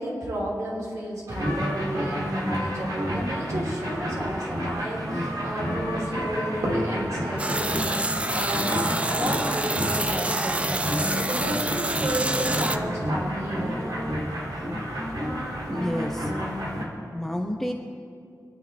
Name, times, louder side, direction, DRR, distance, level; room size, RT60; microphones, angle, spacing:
voice 1, 0.0-14.0, right 1 dB, 50° right, -3 dB, 3.9 m, -32 dB
sound 1, 1.3-16.9, equal, 70° right, 2.8 m, -30 dB
sound 2, 7.4-12.8, right 2 dB, 20° right, 0.6 m, -27 dB
voice 2, 15.7-16.3 16.9-17.7, left 1 dB, 5° left, 1 dB, 0.9 m, -30 dB
26.0 x 10.0 x 3.5 m, 2.3 s
wide cardioid pair, 115°, 7 cm